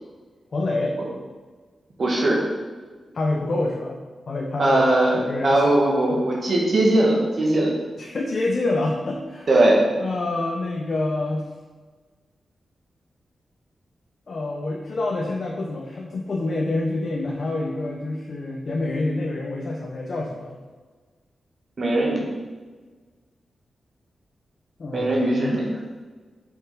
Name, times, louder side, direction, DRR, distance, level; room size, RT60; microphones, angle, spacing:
voice 1, 0.5-1.2 3.1-4.0 4.3-5.7 6.1-6.2 8.0-9.5 10.0-11.5 14.3-20.6 24.8-25.6, left 2 dB, 45° left, -2 dB, 0.8 m, -27 dB
voice 2, 2.0-2.4 4.6-7.7 9.5-9.8 21.8-22.2 24.9-25.7, right 1 dB, 45° right, -3 dB, 2.0 m, -19 dB
7.7 x 5.6 x 4.8 m, 1.4 s
wide cardioid pair, 175°, 0 cm